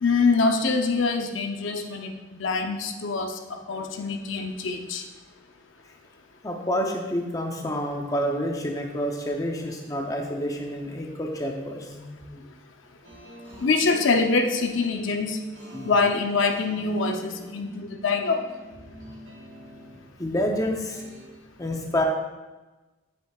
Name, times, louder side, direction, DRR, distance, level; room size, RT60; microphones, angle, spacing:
voice 1, 0.0-3.4 3.7-5.0 13.6-15.4 15.8-18.4, left 4 dB, 60° left, 4 dB, 0.6 m, -24 dB
voice 2, 6.4-12.4 15.7-15.9 20.2-21.1 21.6-22.0, equal, 15° left, 1 dB, 0.6 m, -28 dB
sound 1, 13.0-21.4, equal, 60° right, 1.4 m, -45 dB
Female speech woman speaking, 13.4-14.0 15.5-17.8, equal, 15° right, 1.7 m, -46 dB
9.3 x 8.1 x 2.4 m, 1.2 s
head